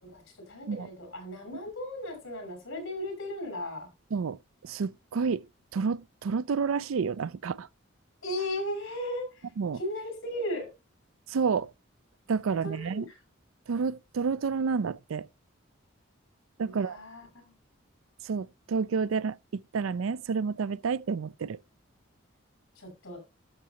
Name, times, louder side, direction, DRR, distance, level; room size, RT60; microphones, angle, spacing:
voice 1, 0.0-3.9 8.2-9.2 9.7-10.7 12.6-13.2 16.6-17.5 22.8-23.2, left 1 dB, 85° left, 5.6 m, -36 dB
voice 2, 4.1-5.4 5.7-7.7 9.6-9.8 11.3-11.7 12.3-13.1 13.7-15.3 16.6-17.0 18.2-19.4 19.7-21.6, right 5 dB, 85° right, 0.4 m, -29 dB
11.0 x 6.8 x 2.9 m
head